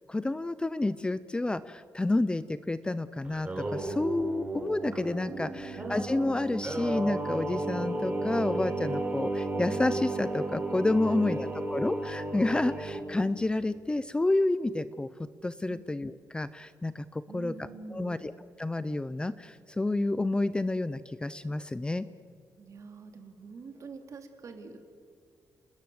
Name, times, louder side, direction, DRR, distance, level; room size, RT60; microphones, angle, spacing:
voice 1, 0.1-18.3 18.6-22.1, left 2 dB, 15° left, 14 dB, 0.6 m, -30 dB
Singing, 3.2-13.0, right 2 dB, 20° right, 4.2 m, -33 dB
voice 2, 5.3-6.1 11.0-11.6 15.7-15.8 17.3-18.3 22.6-24.8, right 4 dB, 50° right, 5 dB, 3.1 m, -45 dB
28.5 x 20.0 x 7.8 m, 2.1 s
cardioid pair, 125°, 7 cm